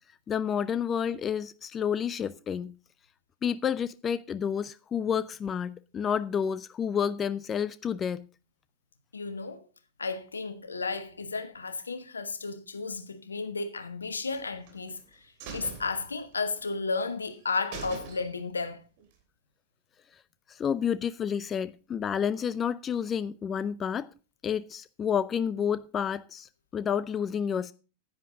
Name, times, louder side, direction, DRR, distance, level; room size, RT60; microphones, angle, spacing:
voice 1, 0.3-2.7 3.4-8.3 20.5-24.1 24.4-27.7, left 8 dB, 25° left, 0.5 m, -30 dB
voice 2, 9.1-9.6 10.0-18.8, left 4 dB, 75° left, 1.2 m, -33 dB
sound 1, 14.3-15.0 15.4-16.7 17.0-17.1 17.4-17.5 17.7-18.6 19.0-19.1, right 6 dB, 45° right, 3.1 m, -43 dB
10.0 x 10.0 x 3.9 m
figure-of-eight pair, 90°, 0 cm